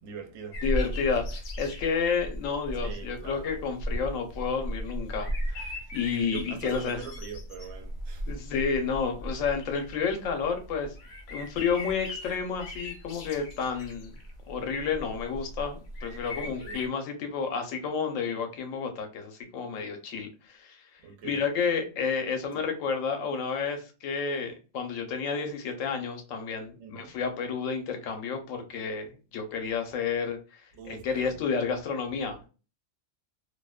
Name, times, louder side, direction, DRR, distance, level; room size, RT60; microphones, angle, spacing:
voice 1, 0.0-0.6 2.8-3.6 6.3-8.4 16.4-16.8 21.0-21.4 22.5-22.6 26.8-27.1 30.7-31.4, right 6 dB, 90° right, 1.0 m, -43 dB
sound 1, 0.5-16.9, equal, 65° left, 0.7 m, -37 dB
voice 2, 0.6-7.0 8.3-10.9 11.3-14.1 14.5-20.8 21.2-32.5, left 5 dB, 85° left, 1.0 m, -31 dB
2.6 x 2.1 x 2.2 m
omnidirectional pair, 1.3 m